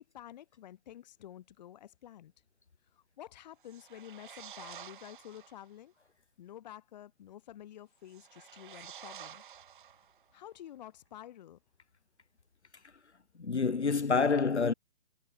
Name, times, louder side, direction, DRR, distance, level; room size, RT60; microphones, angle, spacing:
voice 1, 0.0-2.3 2.9-5.9 6.4-9.4 10.3-11.6, left 11 dB, 35° left, 2.5 m, -50 dB
sound 1, 3.6-5.7 8.0-10.4, right 9 dB, 45° right, 7.8 m, -50 dB
voice 2, 13.4-14.7, left 4 dB, 65° left, 2.5 m, -27 dB
figure-of-eight pair, 130°, 36 cm